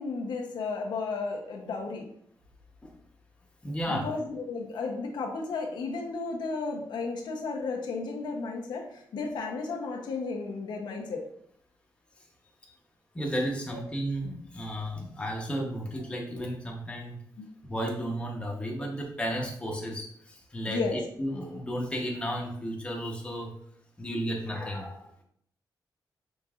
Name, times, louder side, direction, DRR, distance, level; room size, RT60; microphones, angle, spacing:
voice 1, 0.0-2.1 3.9-11.2 17.4-17.5 20.7-21.0, left 4 dB, 85° left, 2 dB, 0.8 m, -33 dB
voice 2, 3.6-4.1 13.1-17.2 17.6-23.5 24.0-25.1, equal, 15° left, -1 dB, 0.9 m, -33 dB
5.2 x 3.9 x 2.4 m, 0.67 s
wide cardioid pair, 140°, 7 cm